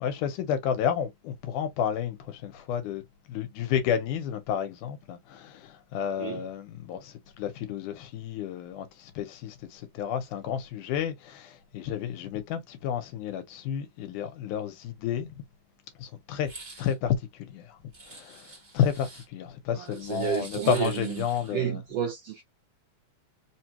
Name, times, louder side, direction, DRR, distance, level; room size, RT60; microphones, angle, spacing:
voice 1, 0.0-3.0 3.3-15.4 16.0-16.5 16.8-17.7 18.1-18.5 18.7-21.8, left 8 dB, 80° left, 2.2 m, -31 dB
sound 1, 16.4-16.9 17.9-19.3 19.9-21.6, right 2 dB, 35° right, 0.7 m, -47 dB
voice 2, 19.7-22.4, right 9 dB, 80° right, 1.3 m, -31 dB
4.9 x 2.2 x 2.9 m
omnidirectional pair, 3.6 m